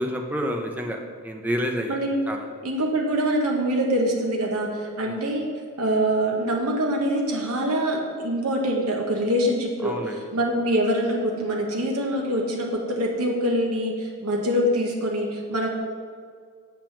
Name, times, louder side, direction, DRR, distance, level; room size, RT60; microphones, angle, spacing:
voice 1, 0.0-2.0 2.3-2.5 5.0-5.1 9.8-10.2, equal, 5° right, 2 dB, 0.6 m, -29 dB
voice 2, 1.9-2.3 2.6-5.5 5.8-9.9 10.3-15.7, equal, 85° right, 0 dB, 1.1 m, -24 dB
6.8 x 5.9 x 5.9 m, 2.1 s
head